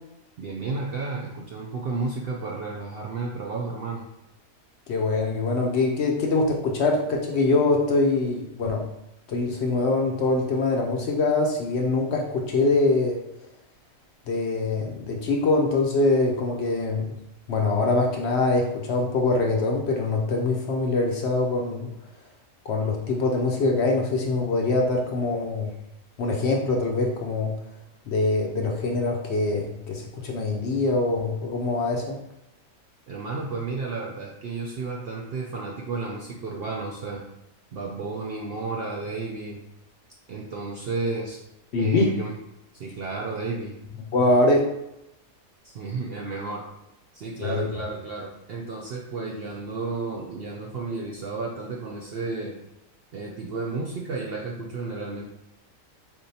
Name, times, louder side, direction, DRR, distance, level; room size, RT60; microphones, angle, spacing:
voice 1, 0.4-4.1 33.1-37.2 37.7-39.6 40.3-41.4 41.8-42.3 42.7-43.8 45.6-46.6 47.1-52.6 53.1-55.2, right 3 dB, 65° right, -1 dB, 0.6 m, -32 dB
voice 2, 4.9-8.8 9.3-13.2 14.3-17.1 17.5-21.9 22.7-25.7 26.2-27.6 28.1-32.2 41.7-42.1 44.1-44.7 47.4-47.7, left 3 dB, 65° left, 0 dB, 0.8 m, -23 dB
4.3 x 3.5 x 2.7 m, 0.84 s
omnidirectional pair, 1.5 m